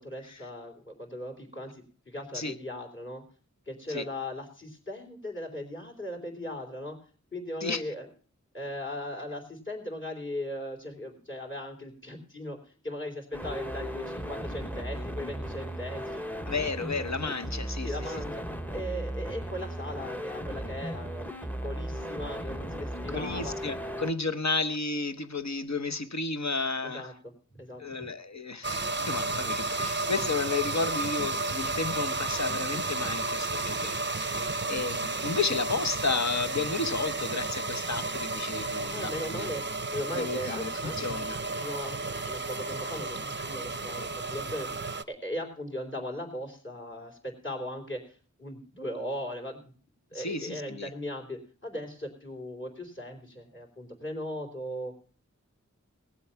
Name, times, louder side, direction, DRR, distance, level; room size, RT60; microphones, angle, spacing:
voice 1, 0.0-3.2 3.7-7.0 7.3-8.1 8.5-16.3 17.8-18.4 18.7-21.3 21.6-23.6 26.9-27.1 27.5-27.8 34.3-34.5 38.9-39.6 39.9-41.0 41.6-44.7 45.1-49.6 50.1-55.0, left 1 dB, 40° left, 3.5 m, -38 dB
sound 1, 13.3-24.1, equal, 5° left, 0.8 m, -36 dB
voice 2, 16.5-18.2 23.1-27.1 27.8-39.5 40.1-40.7 41.0-41.4 50.1-50.9, left 4 dB, 60° left, 0.9 m, -32 dB
sound 2, 28.6-45.0, right 3 dB, 35° right, 0.6 m, -32 dB
18.0 x 7.7 x 5.7 m
wide cardioid pair, 50°, 31 cm